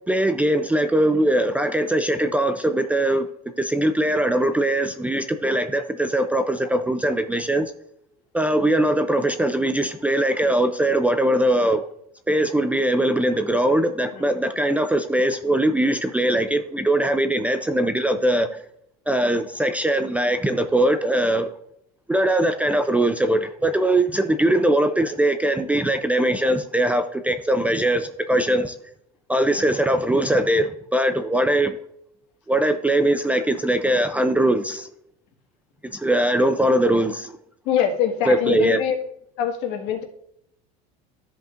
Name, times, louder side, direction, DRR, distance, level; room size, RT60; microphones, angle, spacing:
voice 1, 0.1-3.3 3.6-7.7 8.3-11.8 12.3-18.5 19.1-21.5 22.1-28.7 29.3-31.8 32.5-34.9 35.9-37.3 38.3-38.8, right 1 dB, 5° right, 8 dB, 0.4 m, -21 dB
voice 2, 37.6-38.9 39.4-40.0, left 9 dB, 65° left, 3 dB, 1.7 m, -23 dB
13.5 x 5.2 x 2.5 m, 0.73 s
supercardioid pair, 130°, 20 cm